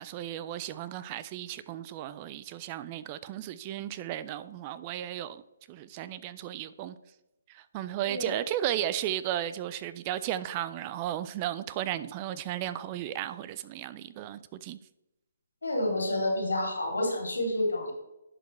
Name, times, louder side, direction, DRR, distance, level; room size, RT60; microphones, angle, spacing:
voice 1, 0.0-5.4 5.7-7.0 7.5-14.8, right 12 dB, 30° right, 0.4 m, -34 dB
voice 2, 15.6-17.9, left 1 dB, 85° left, 2.8 m, -29 dB
10.5 x 5.1 x 3.2 m
hypercardioid pair, 145°, 0 cm